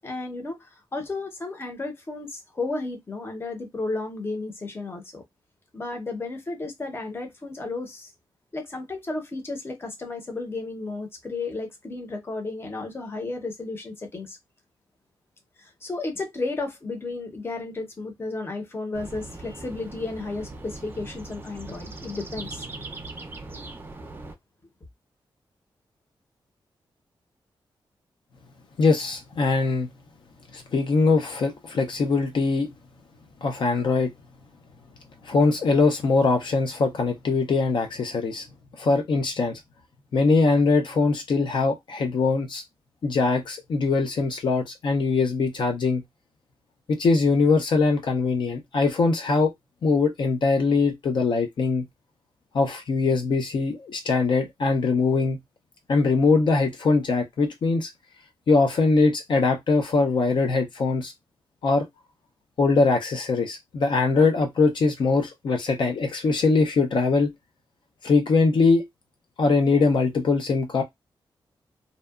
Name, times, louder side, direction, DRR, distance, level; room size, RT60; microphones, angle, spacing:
voice 1, 0.0-5.2 5.7-8.1 8.5-14.4 15.6-23.1, left 3 dB, 25° left, 0.7 m, -33 dB
sound 1, 18.9-24.4, right 2 dB, 25° right, 0.4 m, -40 dB
voice 2, 28.8-29.9 30.5-32.7 33.4-34.1 35.2-38.4 38.8-39.6 40.1-42.6 43.0-46.0 46.9-49.5 49.8-51.9 52.5-55.4 55.9-57.9 58.5-61.1 61.6-61.9 62.6-67.3 68.0-68.9 69.4-70.8, left 4 dB, 60° left, 0.5 m, -22 dB
2.7 x 2.2 x 2.3 m
wide cardioid pair, 135°, 9 cm